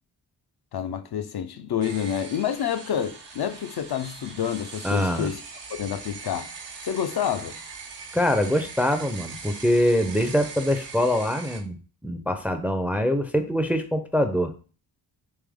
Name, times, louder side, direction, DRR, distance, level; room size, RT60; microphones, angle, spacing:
voice 1, 0.7-5.4 5.7-6.5 6.8-7.6, left 9 dB, 60° left, 0.5 m, -28 dB
sound 1, 1.8-11.6, right 5 dB, 75° right, 0.9 m, -41 dB
voice 2, 4.8-5.3 8.1-11.8 12.0-14.5, left 1 dB, 5° right, 0.5 m, -24 dB
3.4 x 3.2 x 3.5 m
cardioid pair, 60°, 43 cm